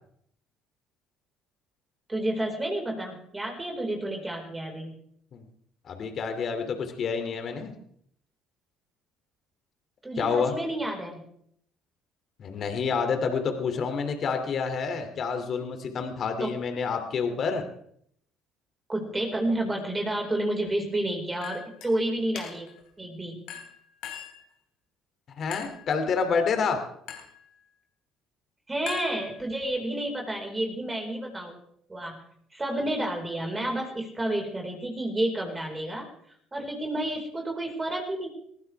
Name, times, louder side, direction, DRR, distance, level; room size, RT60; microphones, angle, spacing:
voice 1, 2.1-5.0 10.0-11.2 16.4-16.5 18.9-22.7 23.0-23.4 28.7-31.6 31.9-32.2 32.5-36.1 36.5-38.3, right 1 dB, 20° right, 1 dB, 4.8 m, -30 dB
voice 2, 5.8-7.7 10.2-10.5 12.4-17.6 25.4-26.8, left 5 dB, 55° left, 6 dB, 2.7 m, -28 dB
Chink clink, 21.4-21.9 22.4-22.8 23.5-24.5 25.5-25.9 27.1-27.4 28.9-29.7, left 9 dB, 75° left, 3.2 m, -40 dB
21.0 x 15.5 x 3.5 m, 0.68 s
supercardioid pair, 75°, 0 cm